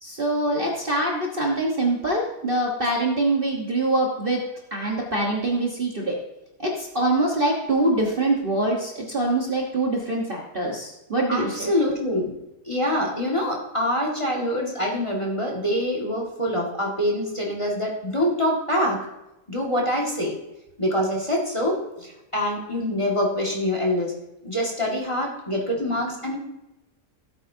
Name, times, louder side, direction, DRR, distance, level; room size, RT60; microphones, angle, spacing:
voice 1, 0.0-4.4 4.7-6.1 6.6-11.7, right 2 dB, 35° right, -2 dB, 1.4 m, -24 dB
voice 2, 11.3-12.3 12.7-19.0 19.5-20.3 20.8-24.1 24.4-26.4, left 1 dB, 20° left, -2 dB, 1.9 m, -25 dB
17.0 x 8.6 x 2.8 m, 0.94 s
omnidirectional pair, 1.8 m